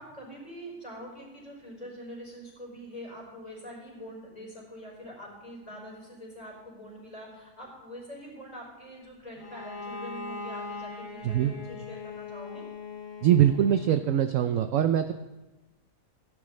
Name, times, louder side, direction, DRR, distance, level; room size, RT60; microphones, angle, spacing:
voice 1, 0.0-12.6, equal, 20° left, -3 dB, 4.9 m, -44 dB
Bowed string instrument, 9.4-14.1, left 3 dB, 60° left, 3.0 m, -40 dB
voice 2, 13.2-15.1, right 10 dB, 70° right, 8 dB, 0.8 m, -23 dB
16.5 x 11.0 x 3.2 m, 1.1 s
omnidirectional pair, 1.8 m